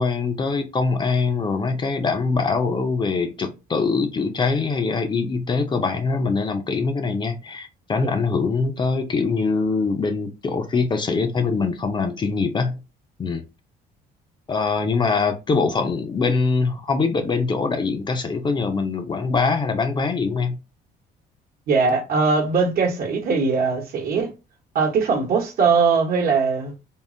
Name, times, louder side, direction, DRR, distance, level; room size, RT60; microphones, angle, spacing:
voice 1, 0.0-12.8 13.2-13.5 14.5-20.6, left 4 dB, 25° left, 0.4 m, -23 dB
voice 2, 21.7-24.3 24.7-26.7, right 4 dB, 60° right, 1.0 m, -20 dB
3.5 x 2.0 x 2.5 m
cardioid pair, 110°, 17 cm